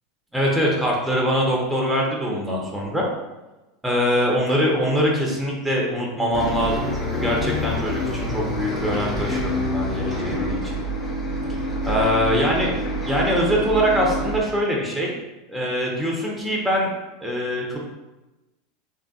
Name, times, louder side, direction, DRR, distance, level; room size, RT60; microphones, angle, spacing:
voice 1, 0.3-3.1 3.8-10.7 11.5-11.6 11.8-12.7 13.1-15.1 15.5-16.9 17.2-17.8, equal, 5° right, -3 dB, 0.8 m, -23 dB
Bus, 6.3-14.4, left 1 dB, 20° left, 0.9 m, -27 dB
3.2 x 2.5 x 2.4 m, 1.1 s
hypercardioid pair, 90°, 0 cm